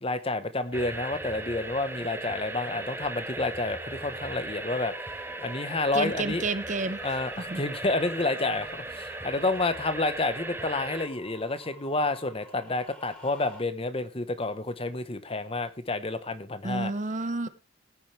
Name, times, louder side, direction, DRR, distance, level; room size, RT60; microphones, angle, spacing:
voice 1, 0.0-6.4 7.0-16.9, left 2 dB, 30° left, 11 dB, 1.1 m, -30 dB
sound 1, 0.7-11.1, right 2 dB, 10° right, 0.8 m, -37 dB
sound 2, 4.9-13.6, equal, 10° left, 4.3 m, -51 dB
voice 2, 5.9-7.0 7.5-7.6 16.6-17.5, right 3 dB, 40° right, 13 dB, 0.9 m, -30 dB
18.0 x 9.4 x 3.3 m, 0.29 s
head